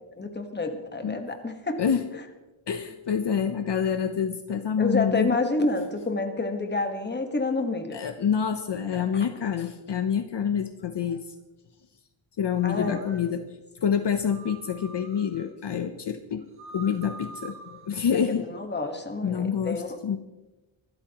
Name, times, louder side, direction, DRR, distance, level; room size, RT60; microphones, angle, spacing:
voice 1, 0.2-1.8 4.8-8.0 8.9-9.3 12.6-13.1 18.4-20.0, left 3 dB, 20° left, 5 dB, 1.4 m, -28 dB
voice 2, 2.7-5.4 7.9-11.2 12.4-13.4 13.8-16.4 16.7-18.5 19.2-20.2, left 7 dB, 55° left, 8 dB, 0.8 m, -27 dB
sound 1, 12.6-13.3 14.3-15.5 16.4-17.9, right 3 dB, 50° right, 2.7 m, -45 dB
24.0 x 13.0 x 3.0 m, 1.1 s
wide cardioid pair, 175°, 49 cm